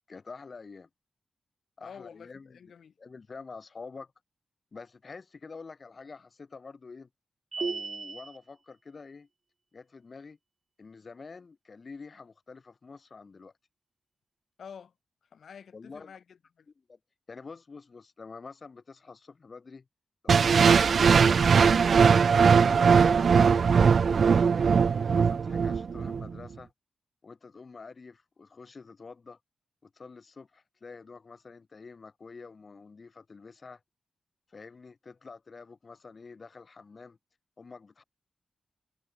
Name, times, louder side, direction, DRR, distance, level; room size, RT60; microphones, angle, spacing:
voice 1, 0.1-0.9 1.8-2.7 3.0-4.1 4.7-7.1 7.6-9.3 9.7-10.4 10.8-13.5 15.7-16.2 16.9-17.0 17.3-19.9 20.2-21.2 21.8-24.4 25.0-26.7 27.2-29.4 29.8-33.8 34.5-37.2 37.6-38.0, left 4 dB, 45° left, 6.2 m, -47 dB
voice 2, 1.8-2.9 14.6-14.9 15.3-16.7, left 7 dB, 75° left, 5.4 m, -48 dB
sound 1, 7.5-8.4, right 4 dB, 45° right, 0.9 m, -34 dB
sound 2, 20.3-26.3, right 6 dB, 60° right, 0.4 m, -20 dB
cardioid pair, 85°, 0 cm